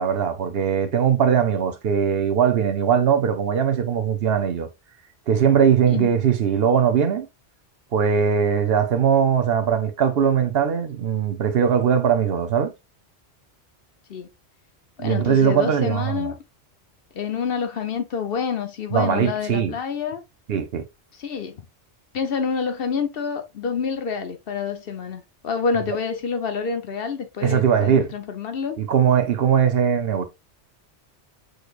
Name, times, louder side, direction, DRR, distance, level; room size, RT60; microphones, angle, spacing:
voice 1, 0.0-4.7 5.3-7.3 7.9-12.7 15.0-16.3 18.9-19.7 20.5-20.8 27.4-28.1 28.8-30.3, right 7 dB, 65° right, 0.9 m, -20 dB
voice 2, 15.0-16.4 17.1-20.2 21.1-21.6 22.1-28.8, left 6 dB, 60° left, 0.9 m, -27 dB
6.4 x 3.2 x 2.4 m
omnidirectional pair, 1.1 m